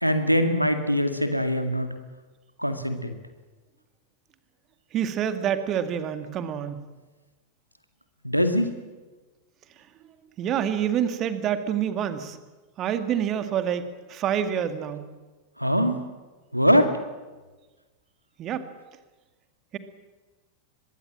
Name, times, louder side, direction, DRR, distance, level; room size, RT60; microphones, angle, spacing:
voice 1, 0.0-1.9 2.6-3.1 8.2-8.7 15.6-16.0 16.5-16.9, equal, 90° right, 8 dB, 2.1 m, -22 dB
voice 2, 4.9-6.8 10.4-12.4 12.8-13.8 14.1-15.0 18.4-18.6, right 9 dB, 30° right, 10 dB, 2.1 m, -27 dB
24.5 x 22.0 x 7.6 m, 1.2 s
figure-of-eight pair, 90°, 0 cm